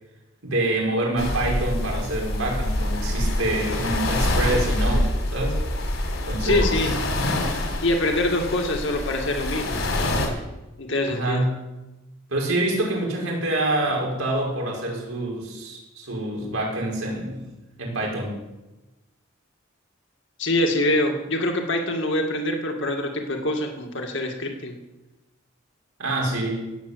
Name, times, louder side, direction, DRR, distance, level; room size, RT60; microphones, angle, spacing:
voice 1, 0.4-5.6 6.3-6.8 11.1-11.6 12.3-17.5 17.8-18.4 26.0-26.6, right 1 dB, 80° right, -2 dB, 5.2 m, -26 dB
sound 1, 1.2-10.3, left 1 dB, 80° left, 4.1 m, -26 dB
voice 2, 6.4-6.9 7.8-10.4 10.8-11.4 20.4-24.8, left 1 dB, 60° left, 2 dB, 2.2 m, -25 dB
18.0 x 8.2 x 8.0 m, 1.0 s
head